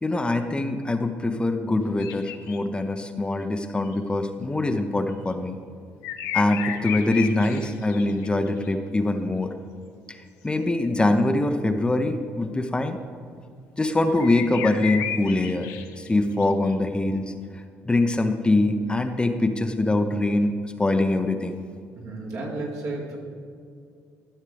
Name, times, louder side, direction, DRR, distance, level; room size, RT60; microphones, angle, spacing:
voice 1, 0.0-5.5 6.3-9.5 10.1-13.0 13.8-15.7 16.0-21.6, left 2 dB, 15° left, 6 dB, 0.7 m, -24 dB
sound 1, 2.0-2.6 3.9-4.0 6.0-8.7 14.1-16.4 16.7-16.8, left 10 dB, 85° left, 0.6 m, -33 dB
voice 2, 22.0-23.2, right 2 dB, 70° right, -3 dB, 2.2 m, -32 dB
13.0 x 6.5 x 3.4 m, 2.3 s
supercardioid pair, 75°, 6 cm